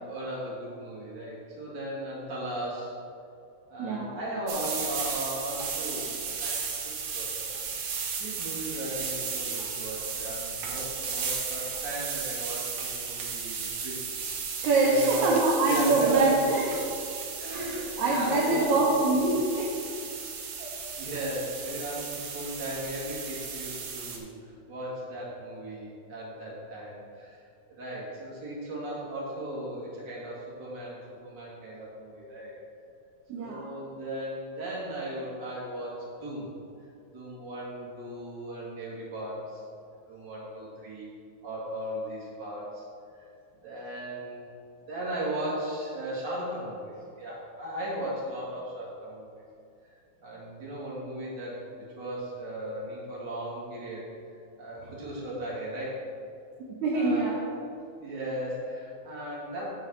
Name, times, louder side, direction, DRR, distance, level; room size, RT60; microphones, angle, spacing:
voice 1, 0.0-3.0 3.7-7.5 8.2-14.1 14.8-16.4 17.4-18.8 20.9-27.4 27.7-32.6 33.3-36.5 37.1-39.6 40.1-41.1 41.4-42.9 43.2-43.3 43.6-44.4 44.9-49.4 50.2-54.1 54.6-56.0 56.9-57.4 58.0-59.6, right 1 dB, 35° right, -6 dB, 2.2 m, -36 dB
voice 2, 3.8-4.1 14.6-16.7 17.5-19.7 20.6-20.7 33.3-33.7 56.8-57.4, right 3 dB, 65° right, -4 dB, 2.0 m, -24 dB
sound 1, 4.5-24.2, right 5 dB, 85° right, 1.4 m, -35 dB
7.1 x 6.3 x 5.6 m, 2.5 s
omnidirectional pair, 4.3 m